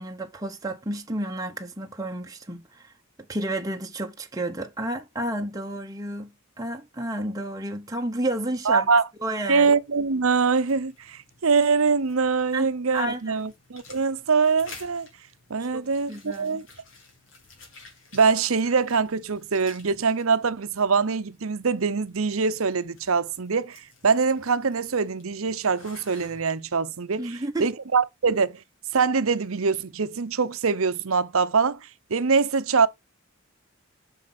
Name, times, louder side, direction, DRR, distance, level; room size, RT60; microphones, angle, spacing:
voice 1, 0.0-2.9 3.3-6.3 6.6-8.9 9.2-9.7 12.5-13.5 15.6-16.6 27.2-27.7, right 1 dB, 15° right, 0.9 m, -31 dB
voice 2, 8.7-9.0 9.5-15.1 15.5-16.7 18.1-28.6 28.9-31.8 32.1-32.9, right 5 dB, 75° right, 0.8 m, -23 dB
sound 1, 9.5-26.4, left 3 dB, 65° left, 3.8 m, -52 dB
7.5 x 5.8 x 5.9 m
head